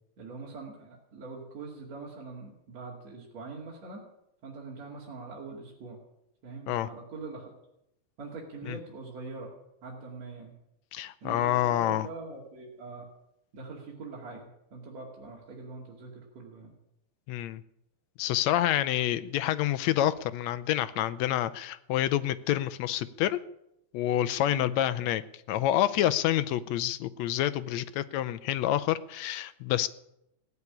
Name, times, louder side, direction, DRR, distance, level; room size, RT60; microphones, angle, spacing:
voice 1, 0.2-4.1 4.4-6.0 6.4-7.5 8.2-9.5 9.8-10.5 11.2-13.0 13.5-16.7 18.8-18.9 24.5-24.7, right 3 dB, 60° right, -3 dB, 3.7 m, -43 dB
voice 2, 10.9-12.1 17.3-17.6 18.2-23.4 23.9-25.2 25.5-29.9, left 12 dB, 75° left, 13 dB, 1.8 m, -28 dB
16.5 x 8.2 x 9.9 m, 0.80 s
omnidirectional pair, 3.4 m